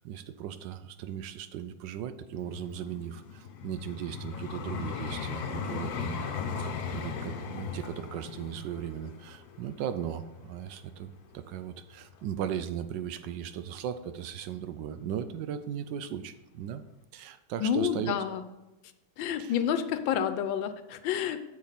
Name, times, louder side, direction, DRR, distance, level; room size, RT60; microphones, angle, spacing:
voice 1, 0.0-6.2 6.6-16.8 17.1-18.1 19.4-19.5, right 9 dB, 75° right, 11 dB, 1.2 m, -37 dB
Vehicle, 2.3-11.4 12.0-12.2, left 6 dB, 60° left, 1.2 m, -38 dB
voice 2, 17.6-18.4 19.2-21.4, left 8 dB, 85° left, 10 dB, 1.4 m, -29 dB
7.5 x 6.9 x 4.0 m, 1.0 s
omnidirectional pair, 2.1 m